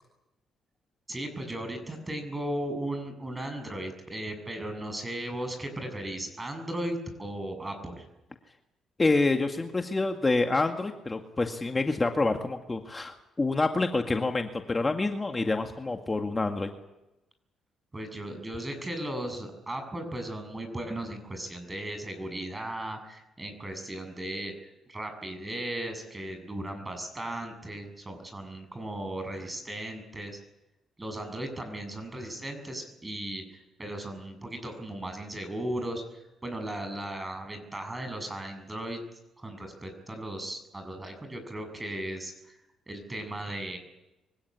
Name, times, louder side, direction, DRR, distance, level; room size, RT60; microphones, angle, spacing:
voice 1, 1.1-8.0 17.9-30.4 31.0-39.0 39.4-42.6 42.9-43.8, right 1 dB, 20° right, 6 dB, 7.5 m, -36 dB
voice 2, 9.0-16.7, left 3 dB, 25° left, 4 dB, 2.0 m, -27 dB
24.5 x 16.5 x 10.0 m, 0.94 s
cardioid pair, 80°, 0 cm